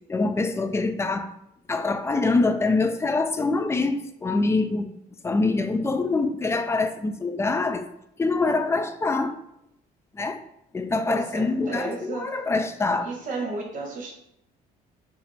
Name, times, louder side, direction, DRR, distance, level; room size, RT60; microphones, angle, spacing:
voice 1, 0.1-1.3 1.7-4.9 5.2-7.8 8.2-9.3 10.1-10.4 10.7-13.1, left 3 dB, 15° left, 8 dB, 0.3 m, -24 dB
voice 2, 11.1-12.3 13.0-14.1, right 3 dB, 50° right, 0 dB, 1.2 m, -33 dB
4.8 x 2.0 x 3.4 m, 0.77 s
cardioid pair, 110°, 17 cm